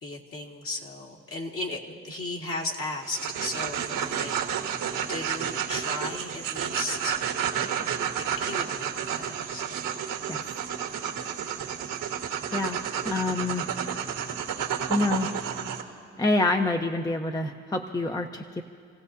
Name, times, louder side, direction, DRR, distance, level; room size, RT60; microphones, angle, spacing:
voice 1, 0.0-4.5 5.1-7.2 8.4-9.9, left 2 dB, 45° left, -1 dB, 2.2 m, -36 dB
sound 1, 3.0-15.8, right 8 dB, 85° right, 1.6 m, -31 dB
voice 2, 13.0-13.7 14.9-15.3 16.2-18.6, left 2 dB, 10° left, 4 dB, 0.8 m, -27 dB
29.5 x 16.5 x 2.8 m, 2.4 s
cardioid pair, 90°, 30 cm